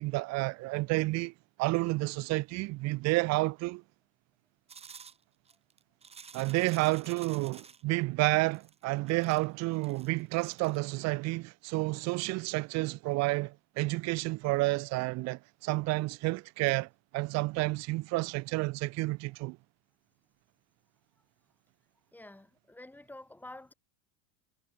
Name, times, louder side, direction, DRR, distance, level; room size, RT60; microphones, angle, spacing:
voice 1, 0.0-1.3 1.6-3.8 6.3-19.6, right 22 dB, 45° right, 0.7 m, -30 dB
sound 1, 4.7-7.8 8.5-10.8, right 6 dB, 15° right, 1.3 m, -52 dB
voice 2, 22.1-23.7, left 1 dB, 5° left, 5.6 m, -49 dB
cardioid pair, 155°, 38 cm